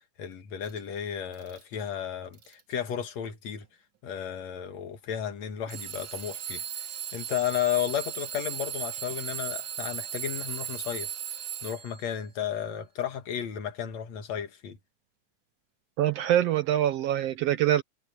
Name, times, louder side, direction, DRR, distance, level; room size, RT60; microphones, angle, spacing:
voice 1, 0.2-3.7 4.0-14.8, left 9 dB, 65° left, 2.7 m, -33 dB
Alarm / Clock, 0.6-0.8 1.3-1.8 2.3-2.7 3.6-3.7 5.7-12.1, right 10 dB, 50° right, 1.8 m, -37 dB
voice 2, 16.0-17.8, right 12 dB, 70° right, 1.6 m, -24 dB
omnidirectional pair, 3.3 m